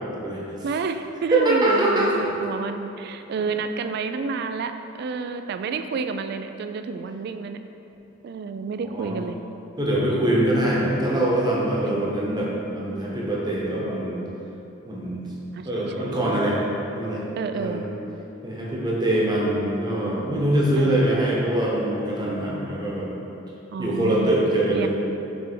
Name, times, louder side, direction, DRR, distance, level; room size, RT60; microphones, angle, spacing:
voice 1, 0.6-7.6 8.2-9.4 11.9-12.2 13.4-13.6 15.5-16.2 17.4-17.8 20.8-21.1 23.7-24.4 24.7-24.9, right 5 dB, 55° right, 8 dB, 0.3 m, -30 dB
voice 2, 1.3-2.2 8.8-9.2 9.8-14.2 14.9-15.3 15.6-16.6 16.9-17.2 17.6-17.9 18.4-23.1 23.8-24.9, right 1 dB, 20° right, -5 dB, 1.0 m, -23 dB
6.1 x 3.4 x 5.2 m, 3.0 s
head